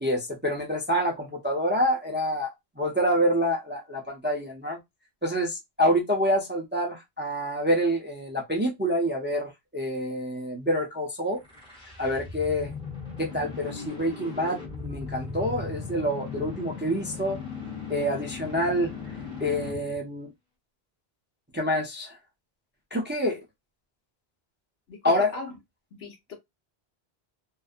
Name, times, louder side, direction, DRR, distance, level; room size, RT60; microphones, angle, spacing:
voice 1, 0.0-2.5 2.8-4.8 5.2-11.4 12.0-12.7 13.2-17.4 17.9-18.9 19.4-20.3 21.5-22.2 22.9-23.4 25.0-25.3, equal, 15° right, 0.4 m, -27 dB
sound 1, 11.3-20.0, left 5 dB, 5° left, 0.8 m, -38 dB
voice 2, 24.9-25.5 25.9-26.3, left 3 dB, 75° left, 1.0 m, -39 dB
2.6 x 2.2 x 2.4 m
omnidirectional pair, 1.1 m